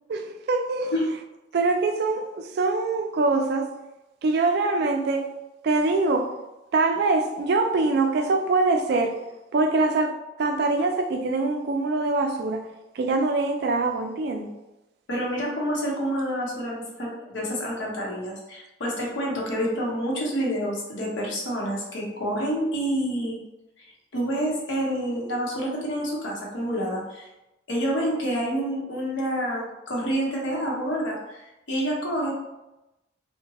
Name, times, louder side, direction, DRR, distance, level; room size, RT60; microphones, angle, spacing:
voice 1, 0.1-0.9 1.5-3.7 4.2-5.3 5.6-6.3 6.7-9.1 9.5-12.6 13.0-14.5, right 3 dB, 55° right, 5 dB, 0.3 m, -23 dB
voice 2, 15.1-23.4 23.8-23.9 24.1-27.3 27.7-31.4 31.7-32.3, equal, 75° left, -3 dB, 0.8 m, -28 dB
2.7 x 2.1 x 2.9 m, 0.98 s
head